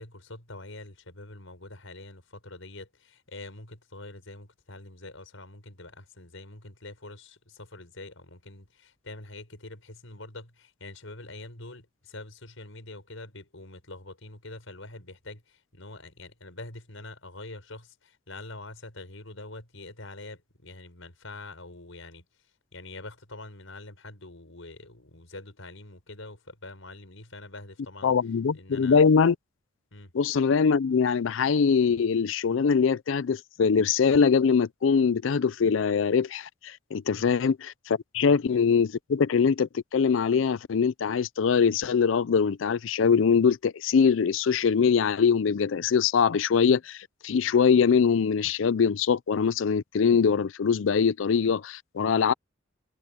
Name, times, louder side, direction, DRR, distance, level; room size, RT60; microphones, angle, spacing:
voice 1, 0.0-22.2 22.7-28.1 28.5-29.0 29.9-30.1 37.1-37.3 38.2-38.4 52.0-52.3, left 2 dB, 90° left, 5.3 m, -45 dB
voice 2, 28.0-29.4 30.1-52.3, left 6 dB, 75° left, 0.4 m, -23 dB
head